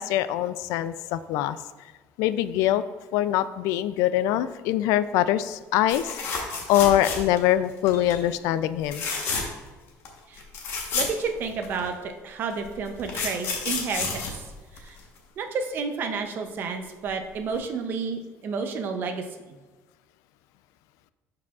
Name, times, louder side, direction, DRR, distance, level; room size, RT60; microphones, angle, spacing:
voice 1, 0.0-1.6 2.2-2.8 3.1-9.0, left 12 dB, 80° left, 14 dB, 0.3 m, -24 dB
sound 1, 5.9-7.5 7.8-8.2 8.8-9.7 10.0-10.1 10.4-11.9 12.6-15.2 17.1-17.2 17.5-17.6, left 4 dB, 45° left, 1.2 m, -31 dB
voice 2, 10.9-14.4 14.8-15.0 15.4-19.6, right 5 dB, 40° right, 6 dB, 0.6 m, -31 dB
11.5 x 4.9 x 2.4 m, 1.3 s
cardioid pair, 170°, 6 cm